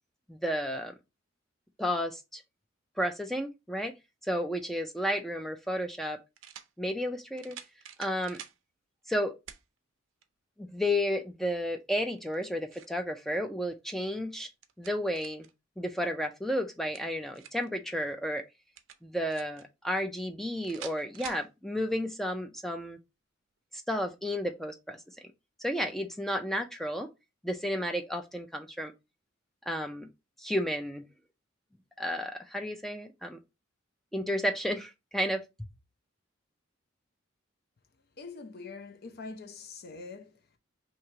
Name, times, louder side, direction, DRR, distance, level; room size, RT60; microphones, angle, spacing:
voice 1, 0.3-0.9 1.8-2.4 3.0-3.9 4.2-6.2 6.8-7.6 8.0-8.4 9.1-9.4 10.6-14.5 14.8-15.5 15.8-18.4 19.0-23.0 23.7-25.0 25.6-27.1 27.4-28.9 29.7-30.1 30.4-31.0 32.0-33.4 34.1-35.4, equal, ahead, 0.4 m, -32 dB
sound 1, 5.1-5.2 6.4-6.7 7.4-8.6 9.5-9.6 10.2-10.3 12.2-13.0 14.3-15.5 16.7-17.7 18.8-19.6 20.6-21.5, right 9 dB, 75° right, 0.5 m, -47 dB
voice 2, 38.2-40.6, left 4 dB, 50° left, 0.6 m, -44 dB
2.9 x 2.8 x 4.5 m
head